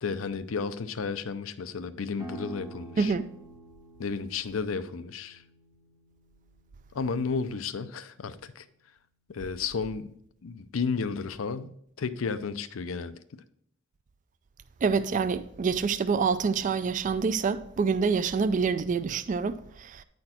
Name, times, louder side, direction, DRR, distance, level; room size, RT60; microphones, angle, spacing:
voice 1, 0.0-3.1 4.0-5.4 6.9-8.7 9.3-10.1 10.4-13.2, left 5 dB, 80° left, 0.5 m, -32 dB
sound 1, 2.2-7.6, right 3 dB, 20° right, 0.8 m, -48 dB
voice 2, 3.0-3.3 14.8-20.0, right 5 dB, 40° right, 0.3 m, -26 dB
9.7 x 4.3 x 4.3 m
head